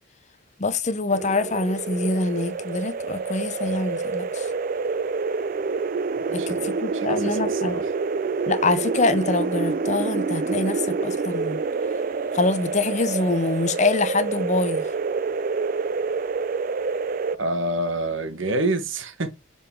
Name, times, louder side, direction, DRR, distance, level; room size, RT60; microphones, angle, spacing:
voice 1, 0.6-4.5 6.3-7.8 8.5-11.6 12.3-14.9, left 3 dB, 35° left, 0.6 m, -25 dB
sound 1, 1.1-17.4, right 4 dB, 40° right, 0.3 m, -27 dB
voice 2, 6.3-7.9 17.4-19.3, right 2 dB, 65° right, 1.1 m, -28 dB
7.1 x 3.9 x 3.6 m
head